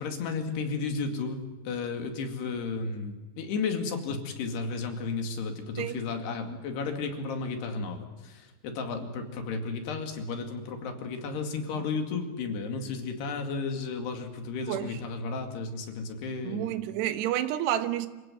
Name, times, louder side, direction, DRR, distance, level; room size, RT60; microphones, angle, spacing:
voice 1, 0.0-1.4 1.7-16.8, left 4 dB, 75° left, 4.3 m, -33 dB
voice 2, 16.4-18.1, right 12 dB, 80° right, 3.3 m, -29 dB
26.5 x 16.5 x 9.2 m
omnidirectional pair, 4.9 m